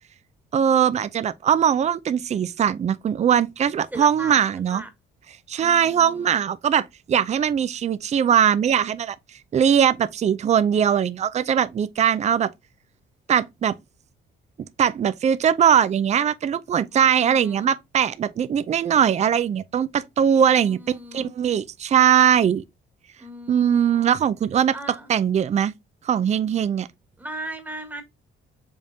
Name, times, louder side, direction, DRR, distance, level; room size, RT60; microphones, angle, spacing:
voice 1, 0.5-4.8 5.5-9.2 9.5-12.5 13.3-13.7 14.8-22.6 23.5-24.7 25.1-25.7 26.0-26.9, right 8 dB, 35° right, 0.4 m, -20 dB
voice 2, 3.9-4.4 4.7-4.9 5.6-6.4 16.9-17.7 20.5-21.3 23.2-24.2 24.7-25.1 27.2-28.0, right 1 dB, 10° right, 1.3 m, -38 dB
5.2 x 3.5 x 2.7 m
cardioid pair, 90°, 20 cm